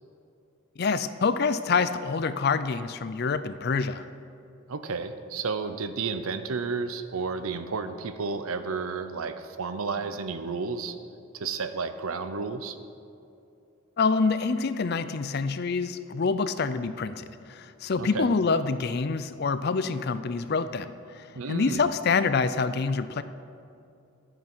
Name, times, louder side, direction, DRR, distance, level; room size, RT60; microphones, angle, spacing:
voice 1, 0.8-4.0 14.0-23.2, left 4 dB, 50° left, 13 dB, 0.4 m, -26 dB
voice 2, 4.7-10.9 11.3-12.8 18.0-18.3 21.3-21.9, right 4 dB, 80° right, 10 dB, 0.6 m, -32 dB
11.5 x 9.1 x 6.1 m, 2.6 s
head